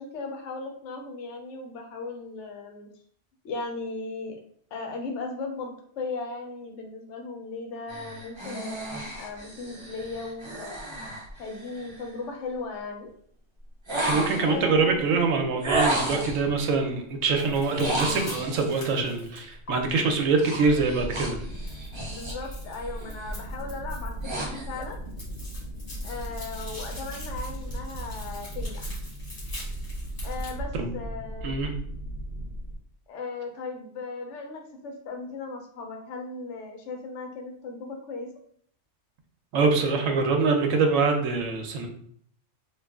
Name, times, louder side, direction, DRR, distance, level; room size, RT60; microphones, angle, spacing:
voice 1, 0.0-2.9 3.4-4.4 4.7-10.8 11.4-13.1 14.4-15.1 22.0-25.0 26.0-28.9 30.2-31.6 33.1-38.3, left 3 dB, 70° left, 3 dB, 1.0 m, -37 dB
sound 1, 7.9-12.1 13.9-14.6 15.6-16.5 17.7-18.7 20.4-22.5 22.8-23.2 23.8-24.8, right 1 dB, 30° right, 0.6 m, -32 dB
voice 2, 14.0-21.4 30.8-31.0 31.4-31.7 39.5-41.9, right 4 dB, 85° right, 4 dB, 1.0 m, -24 dB
sound 2, 17.4-19.7 21.7-24.3 24.6-30.5, left 1 dB, 50° left, 1.9 m, -44 dB
sound 3, 20.6-32.8, right 1 dB, 60° right, 0.9 m, -37 dB
3.1 x 2.4 x 3.5 m, 0.62 s
omnidirectional pair, 1.3 m